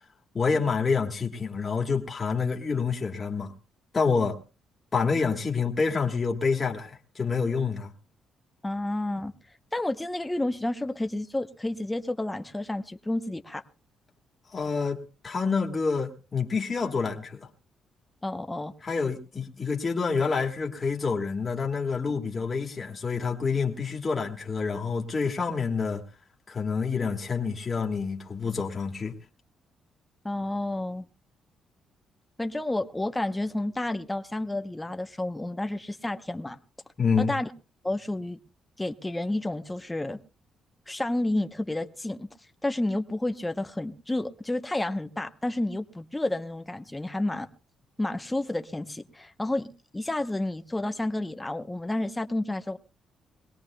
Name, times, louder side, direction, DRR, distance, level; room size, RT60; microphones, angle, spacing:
voice 1, 0.3-3.5 3.9-4.4 4.9-7.9 14.5-17.5 18.8-26.0 26.5-29.1 37.0-37.3, left 5 dB, 30° left, 0 dB, 1.5 m, -27 dB
voice 2, 8.6-9.3 9.7-13.6 18.2-18.7 30.2-31.1 32.4-36.6 37.2-37.5 37.8-38.4 38.8-40.2 40.9-42.3 42.6-47.5 48.0-49.7 49.9-52.8, left 1 dB, 10° left, 8 dB, 0.8 m, -30 dB
22.0 x 18.0 x 2.2 m, 0.32 s
cardioid pair, 90°, 0 cm